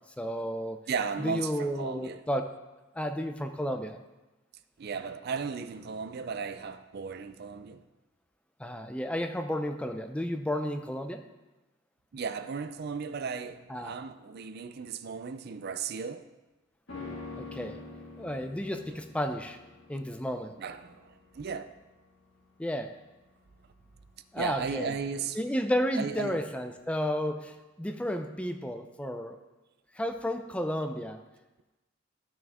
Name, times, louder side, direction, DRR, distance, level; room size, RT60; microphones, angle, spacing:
voice 1, 0.2-0.8 1.2-2.5 2.9-4.0 8.6-11.2 13.7-13.9 17.4-17.8 18.2-19.6 19.9-20.6 22.6-22.9 24.3-24.9 25.3-29.4 29.9-31.2, equal, 5° left, 0.4 m, -32 dB
voice 2, 0.9-2.2 4.8-7.8 12.1-16.2 20.6-21.7 24.4-25.4 25.9-26.4, right 5 dB, 50° right, 0.4 m, -35 dB
sound 1, 16.9-26.3 26.6-26.7, left 3 dB, 65° left, 2.1 m, -47 dB
13.0 x 6.2 x 3.6 m
head